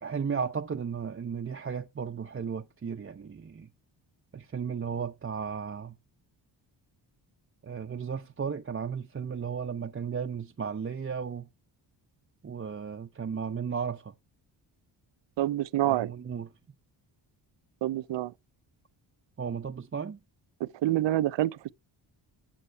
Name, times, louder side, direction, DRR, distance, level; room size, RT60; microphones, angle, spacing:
voice 1, 0.0-3.7 4.3-5.9 7.6-11.5 12.4-14.1 15.8-16.5 19.4-20.2, right 6 dB, 25° right, 0.7 m, -34 dB
voice 2, 15.4-16.1 17.8-18.3 20.6-21.7, right 14 dB, 65° right, 0.6 m, -27 dB
9.9 x 7.4 x 4.4 m
cardioid pair, 70°, 47 cm